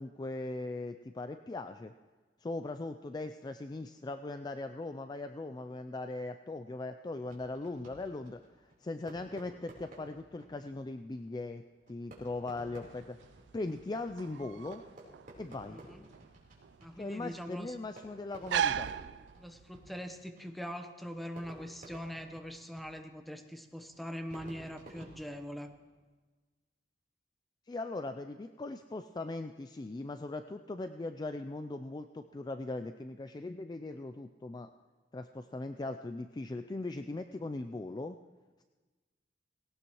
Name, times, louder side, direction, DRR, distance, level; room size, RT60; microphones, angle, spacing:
voice 1, 0.0-1.9 2.4-13.2 13.5-14.8 15.4-15.8 17.0-18.9 27.7-34.7 35.1-38.2, left 2 dB, 25° left, 8 dB, 0.3 m, -39 dB
Fireworks, 7.2-26.0, right 1 dB, 50° right, 3.7 m, -55 dB
sound 1, 12.9-19.9, right 9 dB, 75° right, 0.3 m, -38 dB
voice 2, 15.7-16.0 16.8-17.8 19.4-25.7 33.9-34.0, equal, ahead, 6 dB, 0.9 m, -42 dB
18.5 x 17.5 x 3.0 m, 1.3 s
head